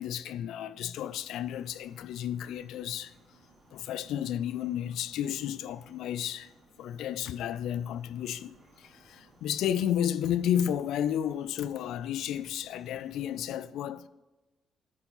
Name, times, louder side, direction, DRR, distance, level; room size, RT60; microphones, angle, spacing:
voice 1, 0.0-3.1 3.7-6.5 6.8-14.1, left 10 dB, 85° left, 0.3 m, -32 dB
sound 1, 1.0-13.6, right 2 dB, 40° right, 3.1 m, -61 dB
10.5 x 4.6 x 5.4 m
cardioid pair, 90°, 0 cm